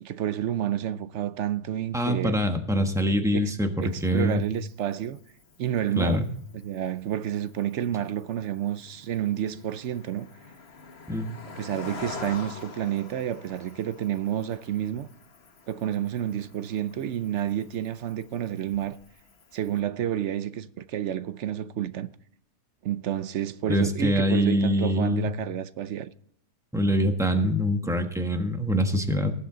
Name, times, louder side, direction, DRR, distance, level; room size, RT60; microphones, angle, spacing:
voice 1, 0.0-2.4 3.3-3.5 3.8-5.2 5.6-6.2 6.5-10.3 11.5-15.1 15.7-19.0 19.5-22.1 22.8-26.1, right 11 dB, 65° right, 0.8 m, -30 dB
voice 2, 1.9-4.4 6.0-6.2 11.1-11.3 23.7-25.3 26.7-29.3, equal, ahead, 1.1 m, -24 dB
Cricket, 3.8-19.8, left 4 dB, 45° left, 1.5 m, -47 dB
18.5 x 7.6 x 3.8 m
omnidirectional pair, 1.5 m